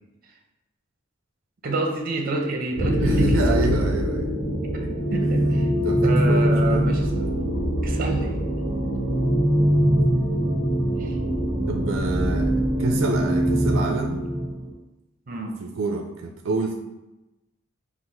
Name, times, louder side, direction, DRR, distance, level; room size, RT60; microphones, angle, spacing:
voice 1, 1.6-3.6 5.1-5.4 6.0-7.3 7.8-8.4 11.0-11.2 15.3-15.6, right 2 dB, 45° right, 2 dB, 0.7 m, -28 dB
sound 1, 2.8-14.7, equal, 80° left, 1.2 m, -23 dB
voice 2, 3.0-4.3 4.8-4.9 5.2-6.8 11.7-12.5 12.8-14.3 15.6-16.8, right 3 dB, 80° right, 3 dB, 0.4 m, -28 dB
3.9 x 2.4 x 4.3 m, 1.0 s
head